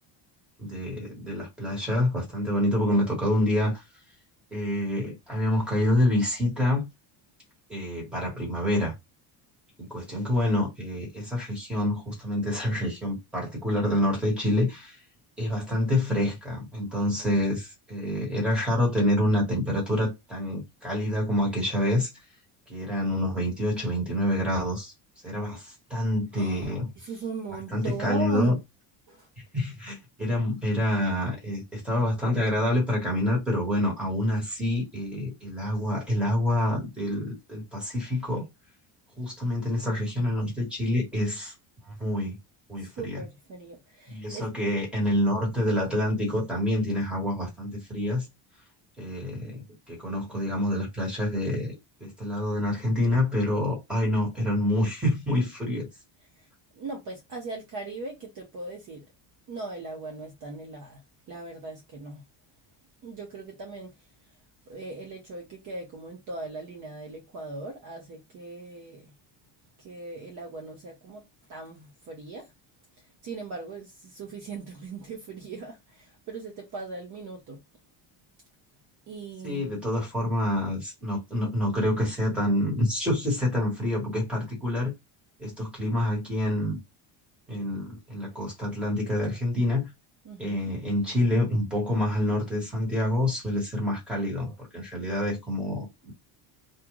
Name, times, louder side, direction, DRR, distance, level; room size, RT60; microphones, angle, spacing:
voice 1, 0.6-3.8 4.5-6.8 7.7-8.9 9.8-15.0 15.4-22.1 22.7-24.9 25.2-26.9 27.7-28.5 29.5-38.5 39.2-41.5 41.9-42.4 42.7-43.2 44.1-48.2 49.0-51.7 52.0-55.9 79.4-84.9 85.4-86.8 87.5-89.9 90.4-96.1, left 1 dB, ahead, 1.3 m, -27 dB
voice 2, 26.3-28.5 29.1-29.3 42.8-44.5 56.4-56.5 56.7-59.1 59.5-61.0 61.3-62.2 63.0-64.1 64.7-69.1 69.8-71.2 71.5-72.5 73.0-77.6 79.1-79.8 90.2-90.7, right 3 dB, 40° right, 0.7 m, -39 dB
2.5 x 2.4 x 3.0 m
cardioid pair, 175°, 48 cm